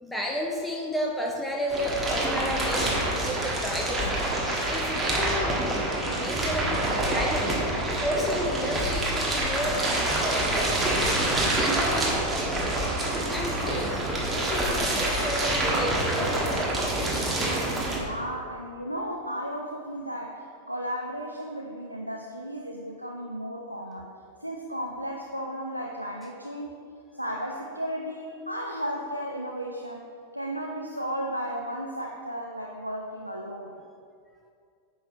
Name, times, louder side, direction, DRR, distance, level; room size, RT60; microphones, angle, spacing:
voice 1, 0.0-5.9 6.1-6.7 7.0-7.6 7.9-16.9, left 1 dB, 5° left, -1 dB, 0.7 m, -33 dB
sound 1, 1.7-18.0, right 1 dB, 10° right, 1.5 m, -27 dB
voice 2, 17.9-24.1 24.4-26.7 27.1-30.1 30.3-33.8, equal, 90° right, -1 dB, 0.5 m, -34 dB
9.9 x 6.3 x 3.0 m, 2.3 s
figure-of-eight pair, 90°, 0 cm